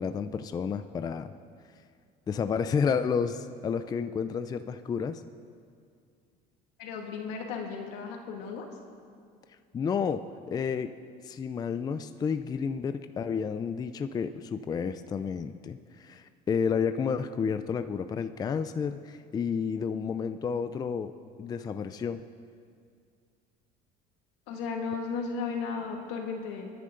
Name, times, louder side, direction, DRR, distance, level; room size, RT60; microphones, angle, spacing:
voice 1, 0.0-1.3 2.3-5.2 9.7-10.9 11.2-21.1 21.4-22.2, left 6 dB, 20° left, 10 dB, 0.4 m, -31 dB
voice 2, 6.8-8.7 24.5-26.7, left 5 dB, 90° left, 1 dB, 2.2 m, -35 dB
30.0 x 10.5 x 3.8 m, 2.3 s
cardioid pair, 135°, 18 cm